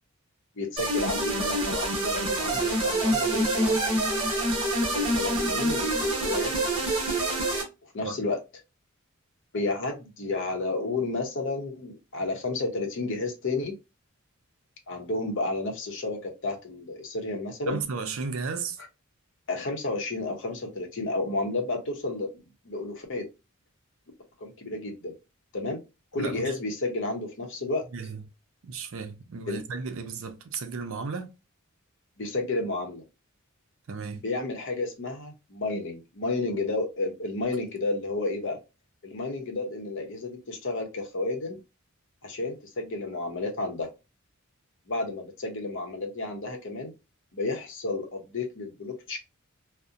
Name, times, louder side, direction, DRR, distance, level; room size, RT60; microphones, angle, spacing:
voice 1, 0.6-3.8 4.9-6.9 7.8-8.4 9.5-13.7 14.9-17.8 19.5-22.3 22.6-23.2 24.4-25.1 25.5-25.8 26.1-27.8 29.5-29.6 32.2-33.0 34.2-38.6 39.0-41.6 42.2-43.9 44.9-46.9 47.3-49.2, left 2 dB, 60° left, 0.7 m, -31 dB
sound 1, 0.8-7.6, right 1 dB, 25° right, 0.8 m, -26 dB
voice 2, 17.7-18.8 26.2-26.5 27.9-28.2 28.6-31.3 33.9-34.2, right 5 dB, 65° right, 0.5 m, -34 dB
2.7 x 2.1 x 2.4 m
head